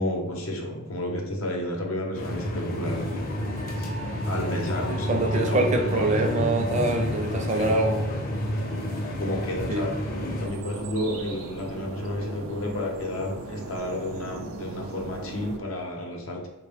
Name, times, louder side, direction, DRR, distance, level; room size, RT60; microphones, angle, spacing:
voice 1, 0.0-3.2 4.2-6.2 7.5-7.7 9.2-16.5, left 1 dB, 85° left, 1 dB, 0.8 m, -31 dB
sound 1, 2.1-10.5, equal, 45° left, 0.6 m, -29 dB
voice 2, 4.9-8.0 9.7-9.8, right 2 dB, 35° right, 3 dB, 0.5 m, -25 dB
sound 2, 10.4-15.6, right 3 dB, 90° right, 0.5 m, -38 dB
3.6 x 2.2 x 3.4 m, 1.1 s
head